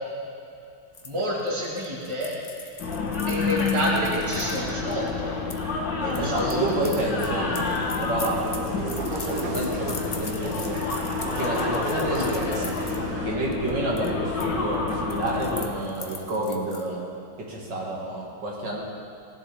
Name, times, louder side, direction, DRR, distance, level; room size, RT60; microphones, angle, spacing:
sound 1, 0.9-5.6 6.1-13.0 13.4-13.7 14.0-14.5 14.7-16.9, left 4 dB, 40° left, 0.5 m, -41 dB
voice 1, 1.0-2.3 3.3-5.3 6.0-7.0, equal, 15° right, -5 dB, 2.1 m, -29 dB
sound 2, 2.8-15.7, left 4 dB, 85° left, 2.2 m, -29 dB
sound 3, 6.0-13.3, right 4 dB, 60° right, 1.4 m, -36 dB
voice 2, 6.2-7.5 8.1-8.7 9.2-10.8 11.4-12.8 13.2-17.0 17.5-18.8, right 1 dB, 90° right, -4 dB, 2.9 m, -29 dB
18.0 x 11.0 x 3.6 m, 2.6 s
omnidirectional pair, 1.9 m